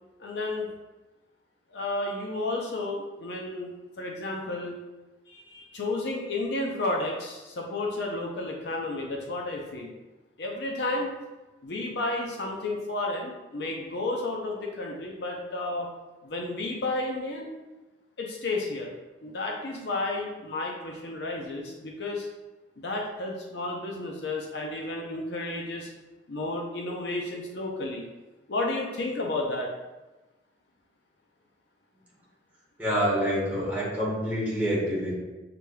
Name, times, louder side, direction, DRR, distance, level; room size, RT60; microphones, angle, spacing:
voice 1, 0.2-0.7 1.7-3.7 4.0-4.8 5.3-9.9 10.4-11.1 11.6-15.9 16.2-17.5 18.2-18.9 19.2-22.3 22.8-25.9 26.3-28.0 28.5-29.7, left 2 dB, 65° left, 0 dB, 0.6 m, -32 dB
voice 2, 32.8-35.2, equal, 10° right, -7 dB, 1.2 m, -27 dB
6.7 x 3.2 x 2.2 m, 1.1 s
head